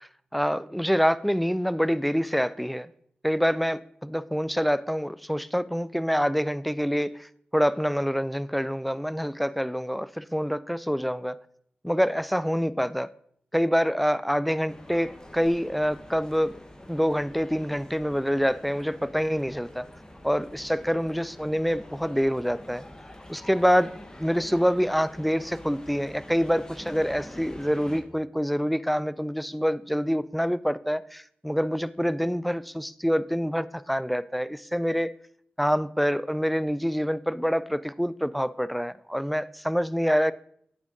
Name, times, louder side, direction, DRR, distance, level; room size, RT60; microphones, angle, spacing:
voice 1, 0.3-2.9 3.2-11.4 11.8-13.1 13.5-16.6 16.9-19.9 20.2-22.8 23.3-35.1 35.6-40.3, equal, ahead, 0.3 m, -26 dB
sound 1, 14.7-28.0, left 1 dB, 20° left, 1.1 m, -46 dB
8.7 x 7.1 x 2.6 m
cardioid pair, 40°, 4 cm